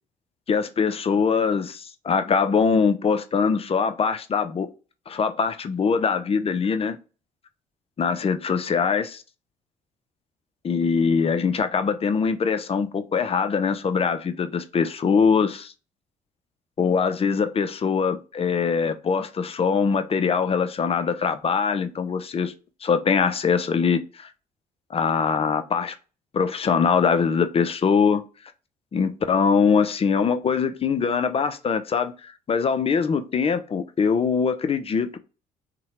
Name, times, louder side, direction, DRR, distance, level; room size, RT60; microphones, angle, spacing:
voice 1, 0.5-4.7 5.1-7.0 8.0-9.2 10.6-15.7 16.8-22.5 22.8-24.3 24.9-26.0 26.3-28.2 28.9-35.2, left 5 dB, 30° left, 0.4 m, -22 dB
2.7 x 2.1 x 2.9 m
hypercardioid pair, 55°, 19 cm